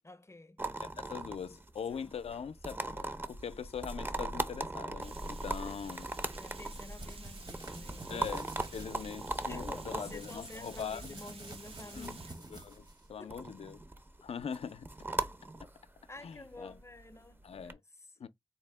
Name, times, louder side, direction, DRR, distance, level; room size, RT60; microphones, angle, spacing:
voice 1, 0.0-0.6 1.9-2.2 2.9-3.1 5.1-5.5 6.3-8.4 9.5-12.4 13.2-13.5 16.1-18.1, left 2 dB, 30° left, 0.5 m, -50 dB
sound 1, 0.6-17.7, right 2 dB, 20° right, 0.5 m, -40 dB
voice 2, 0.8-6.1 8.1-11.2 12.0-12.2 12.5-13.8 14.2-14.9 15.6-15.7 16.2-16.8 17.4-17.8 18.2-18.3, left 7 dB, 90° left, 0.4 m, -42 dB
Water, 5.0-12.3, right 4 dB, 70° right, 0.5 m, -53 dB
sound 2, 6.4-8.9 9.9-13.1, right 2 dB, 45° right, 0.8 m, -51 dB
4.2 x 2.1 x 3.2 m
wide cardioid pair, 55°, 10 cm